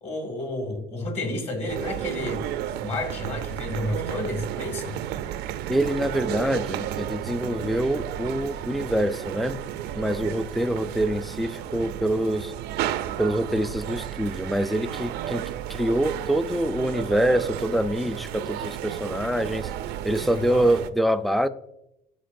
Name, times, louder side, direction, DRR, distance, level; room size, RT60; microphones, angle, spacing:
voice 1, 0.0-5.0 20.1-20.6, left 1 dB, 40° left, 4 dB, 2.2 m, -31 dB
sound 1, 1.7-20.9, right 11 dB, 85° right, 0.5 m, -33 dB
voice 2, 5.7-9.6 10.0-12.5 13.2-15.4 15.7-19.7 20.0-21.5, right 1 dB, ahead, 12 dB, 0.4 m, -25 dB
14.0 x 5.2 x 2.6 m, 0.84 s
cardioid pair, 110°, 17 cm